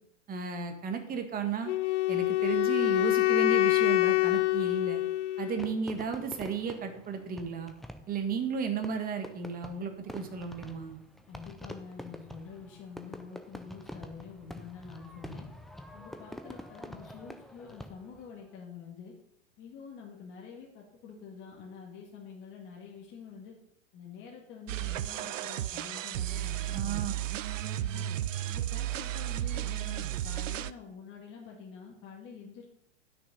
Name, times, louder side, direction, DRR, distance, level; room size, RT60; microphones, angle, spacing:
voice 1, 0.3-1.7 2.1-5.0 5.4-7.7 8.1-11.0 26.7-27.1, right 6 dB, 25° right, 6 dB, 1.5 m, -34 dB
Wind instrument woodwind instrument, 1.7-5.8, left 19 dB, 65° left, 0.6 m, -26 dB
Fireworks, 5.6-18.3, equal, ahead, 0.5 m, -46 dB
voice 2, 11.3-15.5 15.9-19.1 19.6-23.5 23.9-27.1 27.7-28.0 28.4-32.7, left 6 dB, 30° left, -2 dB, 2.0 m, -47 dB
sound 1, 24.7-30.7, right 13 dB, 90° right, 0.6 m, -34 dB
11.5 x 6.5 x 5.4 m, 0.75 s
hypercardioid pair, 125°, 37 cm